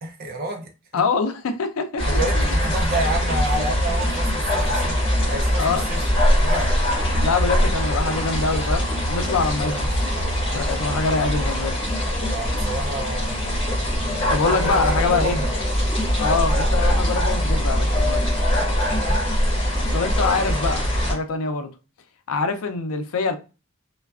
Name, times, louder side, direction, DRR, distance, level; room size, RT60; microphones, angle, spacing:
voice 1, 0.0-1.0 2.1-5.0 5.2-6.7 9.6-9.8 12.3-13.4 14.2-15.3 19.1-19.2, right 2 dB, 45° right, 0.5 m, -30 dB
voice 2, 0.9-2.1 2.3-2.5 3.6-3.7 5.6-5.9 7.2-9.9 10.5-11.8 14.3-15.4 16.2-18.3 19.9-21.7 22.3-23.4, left 4 dB, 80° left, 0.4 m, -24 dB
sound 1, 2.0-21.1, equal, 25° left, 1.2 m, -22 dB
3.2 x 2.2 x 2.3 m
head